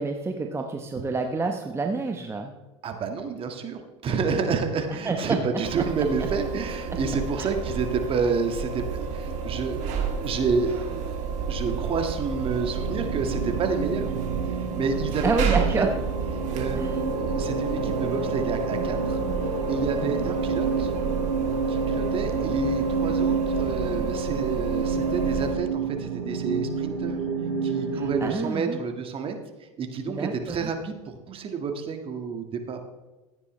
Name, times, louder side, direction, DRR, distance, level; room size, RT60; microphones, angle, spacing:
voice 1, 0.0-2.5 4.9-5.4 5.8-5.9 7.4-7.5 15.2-15.9 16.8-16.9 20.0-20.2 22.3-22.5 27.9-28.8 30.1-30.7, right 3 dB, 15° right, 4 dB, 1.0 m, -28 dB
voice 2, 2.8-11.2 11.5-14.1 14.8-15.9 16.5-19.2 19.7-20.9 21.7-27.2 27.6-32.8, right 5 dB, 35° right, 5 dB, 1.7 m, -29 dB
sound 1, 5.6-25.5, right 4 dB, 55° right, 2.5 m, -30 dB
sound 2, 12.7-28.3, right 5 dB, 90° right, 2.6 m, -30 dB
14.5 x 9.6 x 3.2 m, 1.2 s
hypercardioid pair, 90°, 15 cm